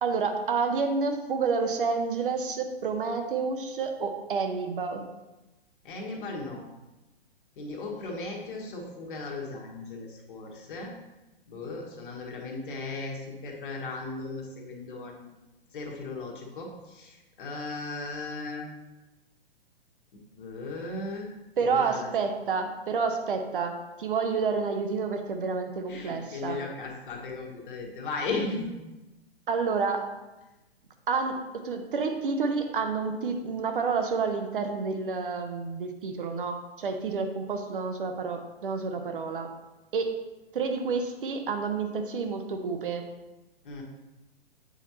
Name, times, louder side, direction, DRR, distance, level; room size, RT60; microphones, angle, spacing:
voice 1, 0.0-5.0 21.6-26.6 29.5-30.1 31.1-39.5 39.9-40.2 40.5-43.1, right 5 dB, 55° right, 6 dB, 0.8 m, -29 dB
voice 2, 5.8-6.6 7.6-10.9 11.5-15.3 15.7-18.7 20.1-21.3 21.6-22.1 25.9-28.7 43.6-43.8, left 3 dB, 55° left, -1 dB, 1.5 m, -36 dB
8.2 x 4.5 x 2.9 m, 1.0 s
figure-of-eight pair, 120°, 31 cm